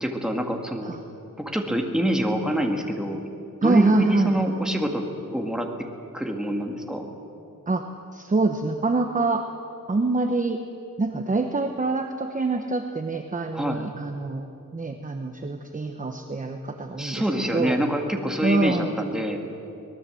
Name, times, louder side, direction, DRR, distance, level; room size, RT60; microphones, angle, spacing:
voice 1, 0.0-0.9 1.4-3.2 3.6-5.0 5.3-5.7 6.1-7.1 13.5-13.9 17.0-19.4, equal, ahead, 2 dB, 2.0 m, -26 dB
voice 2, 3.6-4.5 7.7-7.9 8.1-9.4 9.9-10.6 11.0-14.5 14.7-17.3 17.5-17.8 18.4-18.9, right 3 dB, 25° right, 5 dB, 0.9 m, -25 dB
25.0 x 19.0 x 7.7 m, 2.9 s
wide cardioid pair, 160°, 33 cm